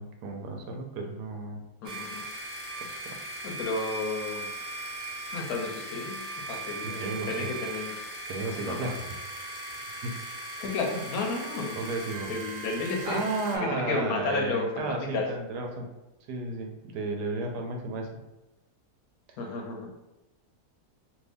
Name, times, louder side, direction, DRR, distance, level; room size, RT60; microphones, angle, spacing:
voice 1, 0.0-1.6 2.8-3.2 6.8-7.5 7.8-9.5 10.0-10.1 11.8-12.3 13.0-15.9 16.3-18.1 19.3-19.4, right 3 dB, 85° right, 2 dB, 1.2 m, -34 dB
voice 2, 1.8-2.2 3.4-4.5 5.3-8.0 8.5-8.9 10.6-11.8 12.3-13.2 13.5-15.3 19.4-19.9, left 3 dB, 70° left, 1 dB, 1.1 m, -32 dB
sound 1, 1.9-13.6, right 2 dB, 65° right, 1.1 m, -38 dB
2.8 x 2.6 x 3.4 m, 0.99 s
omnidirectional pair, 1.7 m